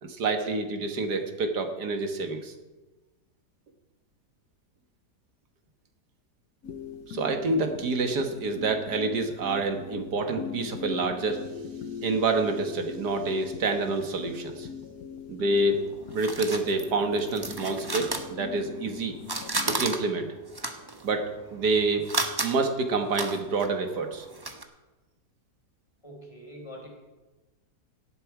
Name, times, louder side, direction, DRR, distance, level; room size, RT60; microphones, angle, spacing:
voice 1, 0.0-2.5 7.1-11.4 12.0-14.7 15.3-15.8 16.1-19.2 19.7-20.3 21.0-24.3, right 3 dB, 70° right, 6 dB, 2.0 m, -28 dB
sound 1, 6.6-19.9, left 7 dB, 60° left, 1.4 m, -41 dB
sound 2, 15.5-18.9 19.2-24.6, right 2 dB, 20° right, 0.8 m, -34 dB
voice 2, 26.0-26.9, equal, 15° left, -1 dB, 4.3 m, -44 dB
17.5 x 11.5 x 4.8 m, 1.2 s
omnidirectional pair, 1.8 m